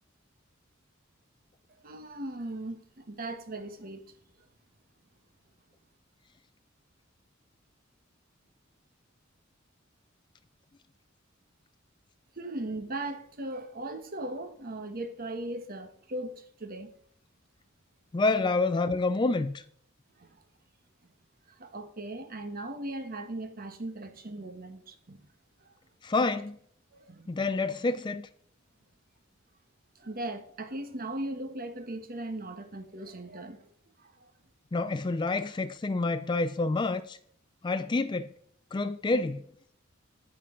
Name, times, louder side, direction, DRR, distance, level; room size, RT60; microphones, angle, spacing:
voice 1, 1.8-4.1 12.3-16.9 20.1-20.4 21.5-25.3 25.6-25.7 26.9-27.3 29.9-33.7 34.0-34.3, right 1 dB, 45° right, 1.2 m, -38 dB
voice 2, 18.1-19.6 26.0-26.6 27.3-28.3 34.7-37.2 37.6-38.3 38.7-39.4, left 3 dB, 25° left, 0.4 m, -28 dB
9.5 x 8.5 x 3.7 m
head